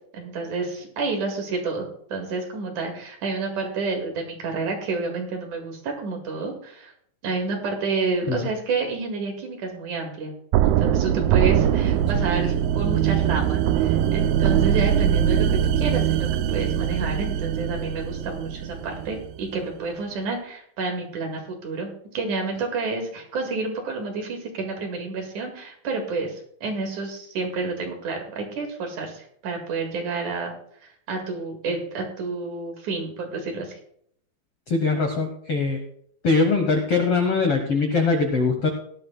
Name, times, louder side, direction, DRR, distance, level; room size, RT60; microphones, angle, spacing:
voice 1, 0.1-6.9 7.2-10.3 10.6-30.5 31.1-33.8, right 3 dB, 60° right, 2 dB, 3.1 m, -29 dB
sound 1, 10.5-19.4, right 10 dB, 90° right, 2.5 m, -22 dB
voice 2, 34.7-35.8 36.2-38.7, left 4 dB, 70° left, 5 dB, 1.4 m, -22 dB
18.0 x 12.0 x 2.2 m, 0.66 s
omnidirectional pair, 4.3 m